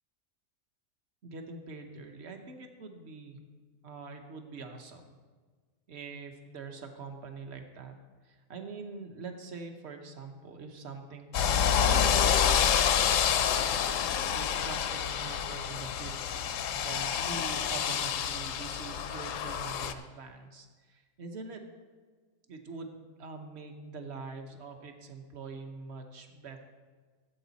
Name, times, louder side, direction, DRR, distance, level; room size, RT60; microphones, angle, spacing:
voice 1, 1.2-3.4 3.8-5.1 5.9-8.0 8.2-11.3 11.8-13.5 14.3-21.6 22.5-26.7, right 4 dB, 50° right, 5 dB, 1.3 m, -44 dB
sound 1, 11.3-19.9, left 8 dB, 65° left, 0.9 m, -28 dB
15.5 x 8.0 x 4.1 m, 1.5 s
omnidirectional pair, 1.5 m